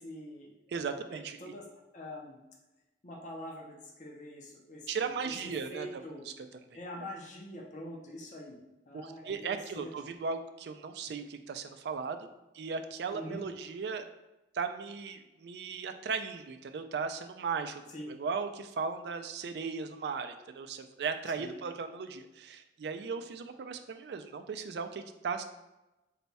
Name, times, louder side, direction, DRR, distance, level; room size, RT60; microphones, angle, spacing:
voice 1, 0.0-0.5 1.1-1.7 1.9-2.4 3.0-6.2 6.7-8.6 8.9-9.9 13.1-13.4 17.9-18.1 21.4-21.6, left 1 dB, 45° left, -2 dB, 0.6 m, -45 dB
voice 2, 0.7-1.4 4.9-6.3 8.9-12.3 12.5-14.1 14.5-17.8 18.1-25.4, right 5 dB, 70° right, 8 dB, 0.3 m, -37 dB
4.1 x 2.3 x 4.0 m, 1.0 s
head